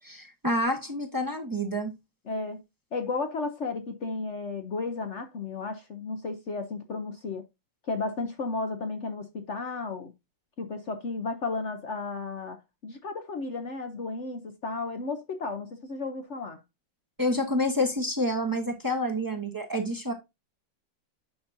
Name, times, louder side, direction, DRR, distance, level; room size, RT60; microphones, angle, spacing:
voice 1, 0.0-1.9 17.2-20.1, left 1 dB, 15° right, 0.7 m, -28 dB
voice 2, 2.3-2.6 2.9-7.4 7.8-10.1 10.6-12.6 12.8-16.6, left 3 dB, 60° left, 0.7 m, -33 dB
9.2 x 5.9 x 2.6 m
omnidirectional pair, 2.1 m